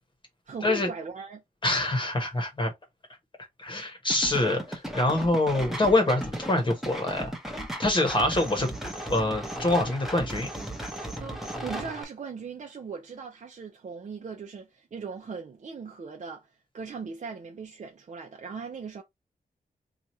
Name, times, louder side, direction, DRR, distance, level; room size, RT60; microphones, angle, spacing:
voice 1, 0.5-1.4 11.2-19.0, right 5 dB, 50° right, 0.7 m, -39 dB
voice 2, 1.6-2.7 3.6-7.3 7.8-8.7 9.1-10.5, left 2 dB, 30° left, 1.0 m, -25 dB
sound 1, 4.1-12.0, right 1 dB, ahead, 0.9 m, -36 dB
2.9 x 2.4 x 4.1 m
wide cardioid pair, 110°, 15 cm